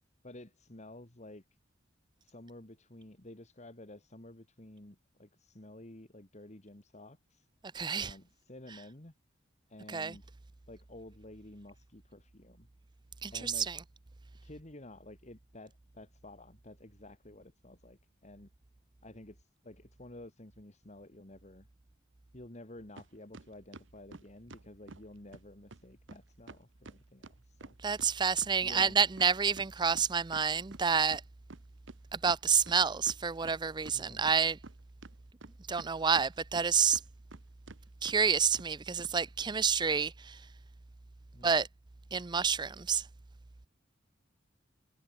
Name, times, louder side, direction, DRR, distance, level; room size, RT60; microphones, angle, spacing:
voice 1, 0.2-1.4 2.2-7.5 8.0-9.1 9.7-10.3 10.7-12.7 13.3-13.7 14.4-18.5 19.0-21.7 22.3-27.8 28.6-29.0 33.9-34.2 41.3-41.6, left 1 dB, 35° left, 2.4 m, -51 dB
voice 2, 7.7-8.1 9.9-10.1 13.2-13.8 27.8-31.2 32.1-34.6 35.7-37.0 38.0-40.4 41.4-41.7 42.1-43.0, right 6 dB, 25° right, 0.5 m, -29 dB
sound 1, 23.0-23.1 23.3-25.1 25.3-25.4 25.7-25.8 26.1-26.2 26.5-28.9 29.2-32.0 32.3-32.4 32.7-33.6 33.9-34.7 35.0-36.7 36.9-37.4 37.7-37.8 38.1-38.2 38.5-38.7 39.0-39.1, right 3 dB, 75° right, 1.2 m, -50 dB
head